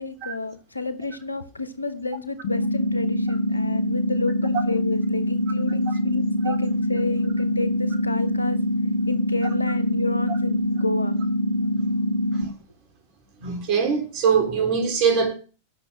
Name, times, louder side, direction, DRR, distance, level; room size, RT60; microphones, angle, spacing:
voice 1, 0.0-8.6 9.1-11.1, left 3 dB, 80° left, 1.3 m, -31 dB
sound 1, 2.4-12.4, left 1 dB, 45° left, 2.3 m, -24 dB
voice 2, 13.4-15.3, right 6 dB, 45° right, 3.5 m, -22 dB
9.9 x 6.7 x 7.5 m
figure-of-eight pair, 90°, 0 cm